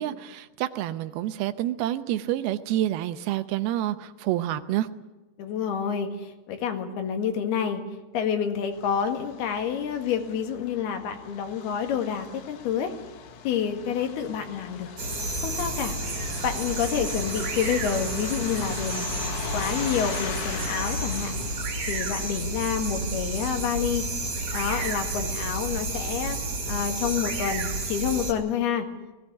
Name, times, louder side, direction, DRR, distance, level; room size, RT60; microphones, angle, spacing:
voice 1, 0.0-4.9, right 13 dB, 80° right, 12 dB, 2.8 m, -28 dB
voice 2, 5.4-7.8 8.1-12.9 13.5-14.9 15.4-16.0 16.4-21.3 21.9-24.0 24.5-26.4 26.7-28.9, left 7 dB, 85° left, 6 dB, 3.9 m, -28 dB
Truck, 8.7-21.6, left 6 dB, 60° left, 1.7 m, -39 dB
sound 1, 15.0-28.3, right 2 dB, 45° right, 4.2 m, -31 dB
19.5 x 17.0 x 9.9 m, 1.1 s
omnidirectional pair, 4.4 m